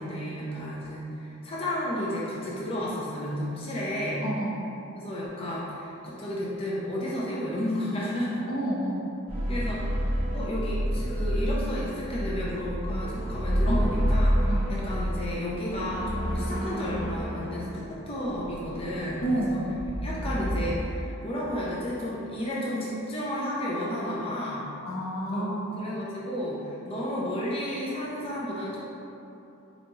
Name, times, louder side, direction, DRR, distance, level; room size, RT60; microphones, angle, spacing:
voice 1, 0.0-4.2 4.9-8.5 9.5-9.8 10.3-19.6 20.0-24.7 25.3-28.8, equal, 30° left, -6 dB, 0.4 m, -32 dB
voice 2, 4.2-4.6 8.5-9.1 13.7-13.9 14.5-14.6 19.2-19.7 24.8-25.8, right 1 dB, 75° left, -4 dB, 0.6 m, -29 dB
sound 1, 9.3-20.8, equal, 25° right, 0.8 m, -29 dB
4.0 x 2.3 x 2.9 m, 2.9 s
head